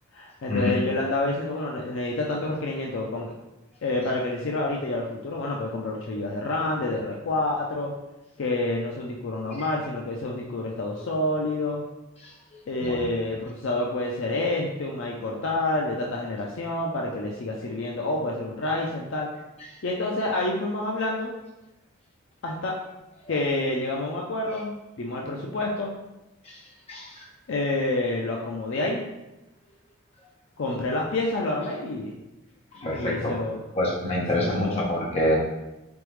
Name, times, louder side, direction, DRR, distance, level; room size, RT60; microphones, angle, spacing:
voice 1, 0.1-3.3 3.8-7.9 8.4-11.8 12.7-19.3 19.8-21.3 22.4-22.7 23.3-25.9 27.5-29.0 30.6-32.1 32.8-33.6 34.3-34.8, left 2 dB, 60° left, -1 dB, 0.4 m, -28 dB
voice 2, 26.9-27.2 32.7-33.3 33.7-35.4, left 1 dB, 30° left, -4 dB, 0.9 m, -26 dB
3.8 x 3.5 x 3.1 m, 0.99 s
head